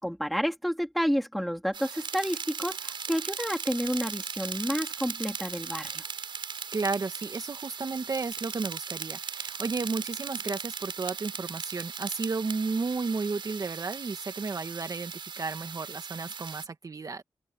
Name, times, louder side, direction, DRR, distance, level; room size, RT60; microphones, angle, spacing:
voice 1, 0.0-6.1, equal, ahead, 3.0 m, -30 dB
sound 1, 1.7-16.7, right 6 dB, 80° right, 4.6 m, -38 dB
voice 2, 6.7-17.2, right 4 dB, 45° right, 2.1 m, -33 dB
open air
wide cardioid pair, 125°, 8 cm